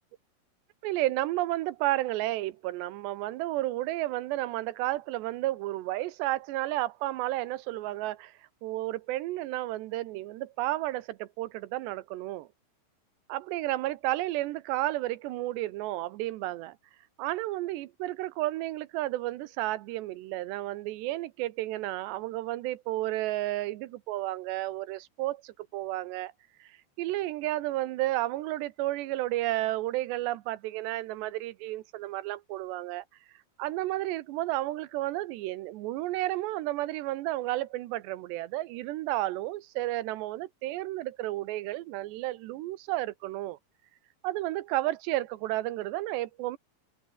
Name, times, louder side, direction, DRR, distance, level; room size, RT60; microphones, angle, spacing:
voice 1, 0.8-8.3 8.6-12.5 13.3-16.8 17.2-26.3 26.6-26.7 27.0-33.0 33.6-43.6 44.2-46.6, right 16 dB, 80° right, 3.0 m, -32 dB
omnidirectional pair, 5.1 m